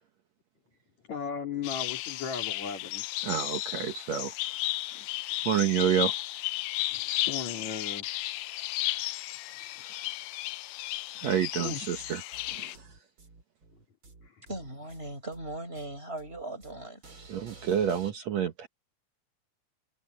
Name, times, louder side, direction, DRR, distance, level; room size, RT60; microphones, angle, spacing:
voice 1, 1.1-3.1 4.9-5.1 6.9-8.1 11.6-11.9 14.2-14.5, left 6 dB, 60° left, 4.0 m, -37 dB
sound 1, 1.6-12.8, left 17 dB, 85° left, 1.5 m, -34 dB
voice 2, 3.2-4.3 5.5-6.1 11.2-12.2 12.5-12.8 17.3-18.7, right 9 dB, 60° right, 2.4 m, -28 dB
sound 2, 11.9-18.1, right 3 dB, 40° right, 4.4 m, -52 dB
voice 3, 14.5-17.0, right 1 dB, 15° right, 6.3 m, -39 dB
omnidirectional pair, 3.7 m